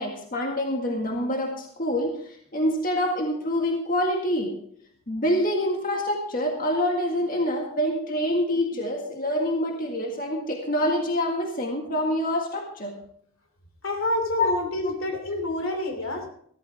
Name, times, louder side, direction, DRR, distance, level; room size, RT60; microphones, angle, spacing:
voice 1, 0.0-2.1 2.5-4.6 5.1-12.9 14.4-14.5 14.8-14.9, left 1 dB, 45° left, 1 dB, 1.9 m, -26 dB
voice 2, 13.8-16.3, left 1 dB, 80° left, 5 dB, 2.9 m, -28 dB
14.5 x 13.5 x 3.5 m, 0.65 s
head